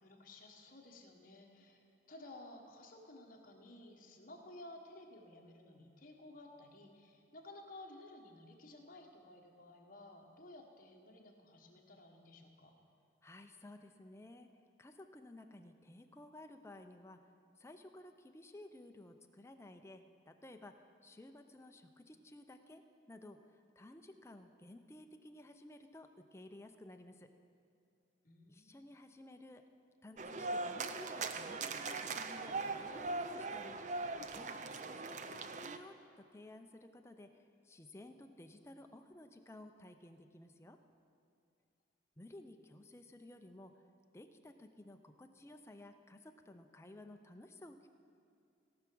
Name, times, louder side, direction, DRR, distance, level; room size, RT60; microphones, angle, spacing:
voice 1, 0.0-1.8 2.1-12.7 28.2-28.9, left 2 dB, 45° left, 1 dB, 1.3 m, -55 dB
voice 2, 13.2-14.5 14.8-17.2 17.6-27.3 28.5-29.6 30.0-34.0 34.3-40.8 42.2-43.8 44.1-47.9, left 1 dB, 15° left, 6 dB, 0.5 m, -55 dB
sound 1, 30.2-35.8, right 3 dB, 40° right, 0.4 m, -40 dB
17.5 x 5.8 x 6.2 m, 2.5 s
head